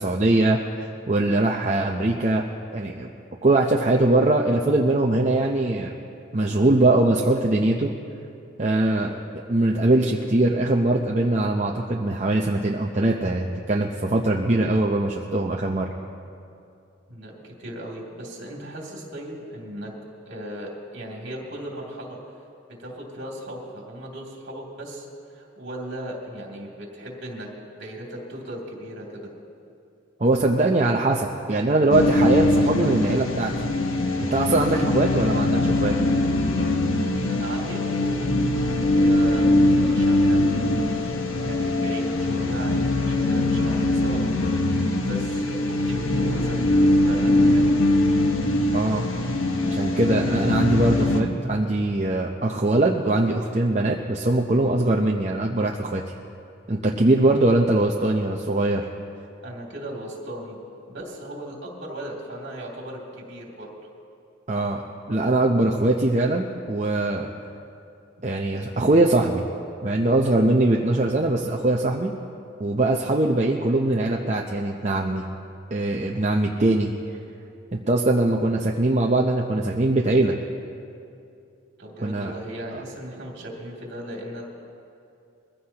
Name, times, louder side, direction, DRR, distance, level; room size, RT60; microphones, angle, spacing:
voice 1, 0.0-2.4 2.7-3.1 3.4-5.9 6.3-7.9 8.6-9.2 9.5-15.9 30.2-33.5 34.2-35.9 48.7-49.0 49.7-56.0 56.7-58.8 64.5-64.8 65.1-67.3 68.2-69.4 69.8-72.1 72.6-75.2 75.7-76.9 77.7-80.4 82.0-82.3, right 2 dB, 35° right, 0 dB, 0.7 m, -21 dB
voice 2, 17.1-19.9 20.3-22.2 22.8-25.1 25.3-27.5 27.8-29.3 37.3-38.3 38.7-44.2 44.7-47.8 59.4-60.6 60.9-63.7 68.2-68.3 76.7-76.8 81.8-84.4, right 1 dB, 60° right, -2 dB, 2.8 m, -37 dB
sound 1, 31.9-51.2, left 1 dB, 80° left, 1.2 m, -22 dB
22.5 x 15.5 x 2.9 m, 2.6 s
head